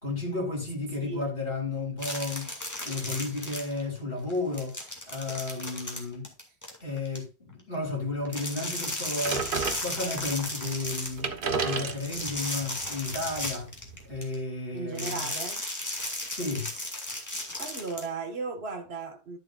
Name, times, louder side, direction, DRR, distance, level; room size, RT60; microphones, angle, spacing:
voice 1, 0.0-2.5 2.9-4.7 5.1-6.3 6.8-9.5 9.8-13.7 14.0-15.3 16.3-16.7, left 3 dB, 60° left, 3.6 m, -33 dB
sound 1, 2.0-4.0 4.3-7.2 8.3-11.2 12.0-14.3 15.0-18.0, left 1 dB, 15° left, 2.3 m, -35 dB
sound 2, 9.2-10.3 10.9-11.0 11.1-14.2, right 4 dB, 55° right, 1.3 m, -33 dB
voice 2, 14.7-15.6 17.5-19.4, right 4 dB, 70° right, 1.9 m, -36 dB
12.0 x 7.4 x 2.4 m
omnidirectional pair, 1.1 m